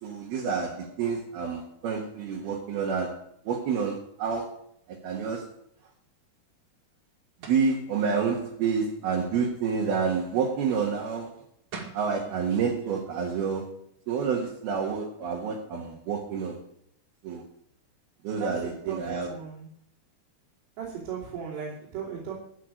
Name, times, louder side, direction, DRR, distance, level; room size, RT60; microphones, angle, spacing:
voice 1, 0.0-4.6 4.9-5.5 7.5-11.4 11.9-16.6 17.2-17.4 18.2-19.3, right 6 dB, 70° right, -1 dB, 3.3 m, -29 dB
sound 1, 7.4-7.7 11.4-11.5 11.7-12.1, right 4 dB, 50° right, 2.9 m, -40 dB
voice 2, 18.9-19.7 20.8-22.3, right 7 dB, 90° right, -6 dB, 5.5 m, -36 dB
14.5 x 5.7 x 9.4 m, 0.68 s
omnidirectional pair, 4.7 m